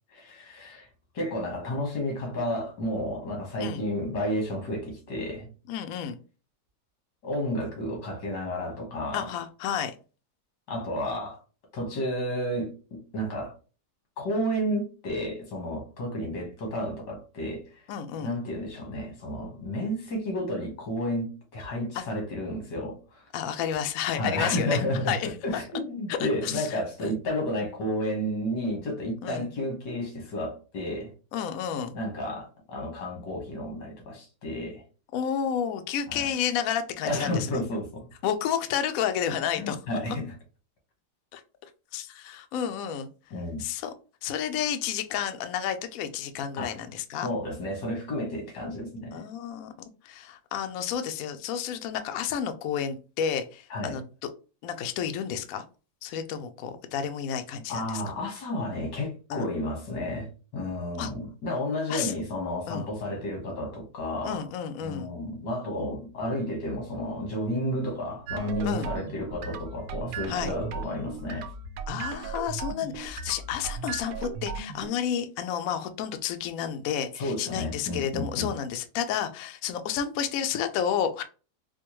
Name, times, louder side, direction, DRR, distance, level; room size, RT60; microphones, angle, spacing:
voice 1, 0.1-0.9 1.1-5.5 7.2-9.3 10.7-11.4 11.7-13.5 14.2-17.8 18.2-23.3 24.2-31.1 31.9-34.8 36.1-36.3 37.0-38.1 39.6-40.3 43.3-43.7 46.6-46.7 47.2-49.2 53.7-54.0 57.7-64.5 64.8-71.5 77.2-78.5, left 1 dB, 85° left, 2.0 m, -31 dB
voice 2, 5.7-6.2 9.1-9.9 17.9-18.4 21.9-22.0 23.3-24.8 25.1-25.3 26.1-27.1 29.2-29.5 31.3-32.0 35.1-37.6 38.2-39.8 40.1-40.2 41.3-41.4 41.9-43.1 43.6-43.9 44.2-47.3 49.1-49.7 50.0-54.0 54.6-55.6 56.0-58.0 59.3-59.5 61.0-61.1 61.9-62.1 62.7-62.8 64.2-65.1 68.6-68.9 70.3-70.5 71.9-81.2, left 8 dB, 70° left, 0.8 m, -31 dB
sound 1, 68.3-74.9, right 5 dB, 70° right, 0.9 m, -36 dB
4.5 x 2.2 x 3.0 m
omnidirectional pair, 1.8 m